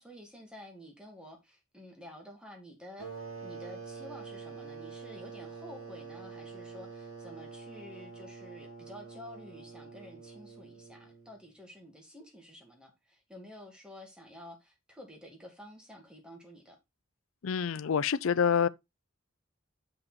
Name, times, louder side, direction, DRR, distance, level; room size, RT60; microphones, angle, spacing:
voice 1, 0.0-16.8, left 1 dB, 5° right, 2.1 m, -50 dB
sound 1, 3.0-11.4, right 5 dB, 75° right, 4.4 m, -46 dB
voice 2, 17.4-18.7, left 7 dB, 85° left, 0.5 m, -27 dB
7.1 x 5.5 x 3.9 m
head